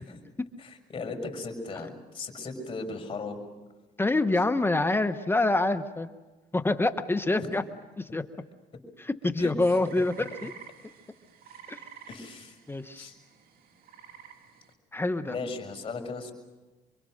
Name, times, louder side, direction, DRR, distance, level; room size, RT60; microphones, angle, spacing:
voice 1, 0.6-3.4 7.3-7.5 9.4-9.5 12.1-12.5 13.0-13.1 15.2-16.3, left 3 dB, 30° left, 4 dB, 6.2 m, -37 dB
voice 2, 4.0-6.1 6.5-7.6 8.0-8.3 9.0-10.5 11.7-11.8 12.7-13.1 14.9-15.3, left 2 dB, 15° left, 9 dB, 1.0 m, -26 dB
sound 1, 9.6-14.7, right 7 dB, 60° right, 2.5 m, -50 dB
26.5 x 24.0 x 6.5 m, 1.2 s
cardioid pair, 110°, 17 cm